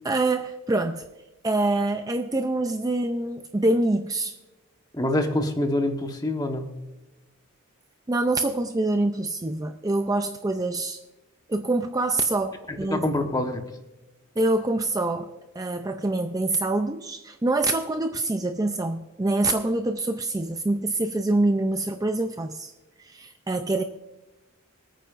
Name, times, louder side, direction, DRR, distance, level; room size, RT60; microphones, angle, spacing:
voice 1, 0.0-1.0 1.4-4.3 8.1-11.0 11.5-13.0 14.4-22.7 23.0-23.8, right 2 dB, 15° right, 7 dB, 0.4 m, -25 dB
voice 2, 4.9-6.7 12.7-13.6, left 1 dB, 20° left, 5 dB, 1.1 m, -26 dB
25.5 x 9.1 x 2.5 m, 1.1 s
head